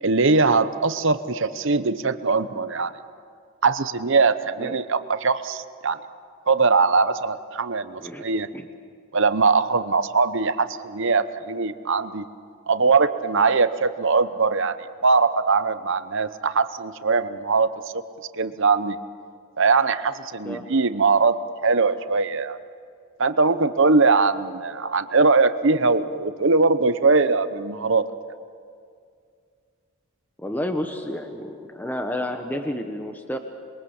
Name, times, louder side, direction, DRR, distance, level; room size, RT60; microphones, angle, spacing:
voice 1, 0.0-2.9 3.6-6.0 6.5-8.5 9.1-12.3 12.7-14.8 15.0-17.7 18.4-19.0 19.6-22.6 23.2-28.0, right 4 dB, 55° right, 12 dB, 0.9 m, -21 dB
voice 2, 30.4-33.4, left 1 dB, 10° left, 5 dB, 1.0 m, -30 dB
27.0 x 22.5 x 7.2 m, 2.2 s
head